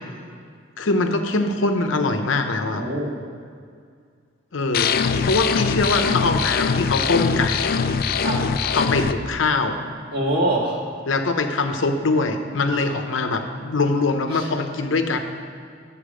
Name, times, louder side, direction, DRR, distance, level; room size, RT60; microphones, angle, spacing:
voice 1, 0.8-2.8 4.5-4.9 5.2-7.7 8.7-9.8 11.1-15.2, left 3 dB, 90° left, 6 dB, 0.8 m, -22 dB
voice 2, 2.7-3.1 8.2-8.4 10.1-10.8 12.7-13.0 14.3-14.5, right 1 dB, 50° right, -3 dB, 2.0 m, -24 dB
sound 1, 4.7-9.1, left 5 dB, 50° left, 0.4 m, -22 dB
10.0 x 7.3 x 5.0 m, 2.1 s
head